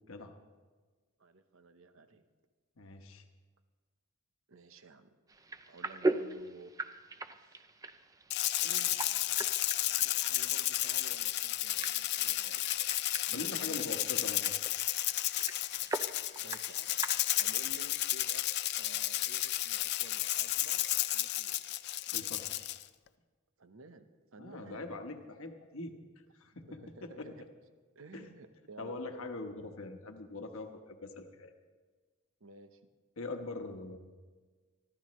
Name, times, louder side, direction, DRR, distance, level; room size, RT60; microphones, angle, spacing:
voice 1, 1.2-2.2 4.5-5.1 5.7-6.7 7.4-7.7 8.6-9.5 9.8-12.6 12.9-14.1 16.4-16.9 17.4-20.8 21.1-21.7 23.6-24.9 26.7-27.5 27.9-29.2 32.4-32.9, right 3 dB, 65° right, 9 dB, 0.9 m, -54 dB
voice 2, 2.8-3.2 13.3-14.5 22.1-22.5 24.4-25.9 26.3-27.3 28.1-28.3 28.8-31.5 33.2-34.0, left 2 dB, 70° left, 5 dB, 1.1 m, -42 dB
sound 1, 5.3-17.7, right 2 dB, 15° right, 0.4 m, -41 dB
Rattle (instrument), 8.3-22.8, left 15 dB, 50° left, 0.4 m, -32 dB
24.0 x 13.5 x 3.1 m, 1.4 s
head